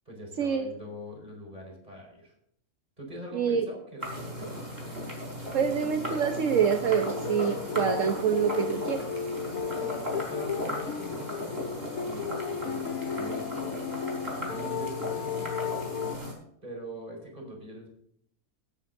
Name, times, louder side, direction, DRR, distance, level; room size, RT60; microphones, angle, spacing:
voice 1, 0.0-2.3 3.0-4.7 9.7-13.7 14.4-15.4 16.6-17.9, right 1 dB, 30° right, 0 dB, 4.9 m, -43 dB
voice 2, 3.3-3.7 5.5-9.0, right 7 dB, 65° right, 6 dB, 1.3 m, -26 dB
sound 1, 4.0-16.3, equal, 45° right, 4.9 m, -36 dB
sound 2, 6.5-16.2, left 7 dB, 80° left, 1.1 m, -35 dB
17.0 x 13.5 x 2.7 m, 0.70 s
omnidirectional pair, 1.5 m